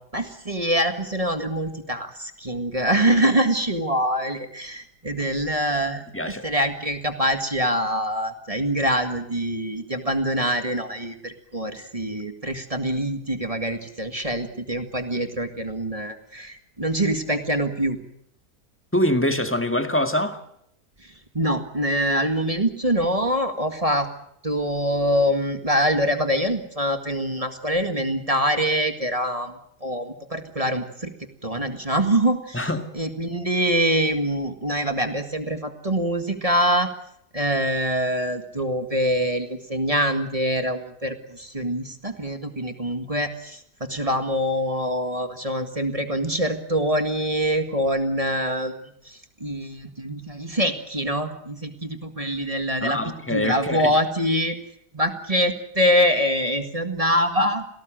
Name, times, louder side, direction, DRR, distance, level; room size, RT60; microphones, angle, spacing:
voice 1, 0.1-18.0 21.0-24.1 24.4-31.1 31.4-32.7 33.0-36.9 37.3-53.0 53.3-54.6 54.9-57.6, equal, 20° right, 7 dB, 1.8 m, -24 dB
voice 2, 6.1-6.5 18.9-20.4 32.5-32.9 52.8-53.9, left 1 dB, 10° left, 7 dB, 1.8 m, -24 dB
27.5 x 18.0 x 7.7 m, 0.73 s
omnidirectional pair, 1.7 m